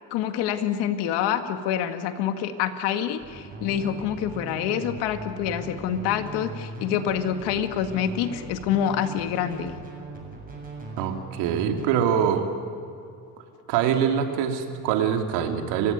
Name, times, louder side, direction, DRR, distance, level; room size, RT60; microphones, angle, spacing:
voice 1, 0.1-9.8, left 9 dB, 85° left, 8 dB, 2.0 m, -26 dB
sound 1, 3.2-11.9, right 2 dB, 20° right, 7.5 m, -39 dB
voice 2, 11.0-12.5 13.7-15.9, right 8 dB, 85° right, 5 dB, 2.8 m, -24 dB
29.5 x 16.5 x 9.3 m, 2.6 s
cardioid pair, 115°, 40 cm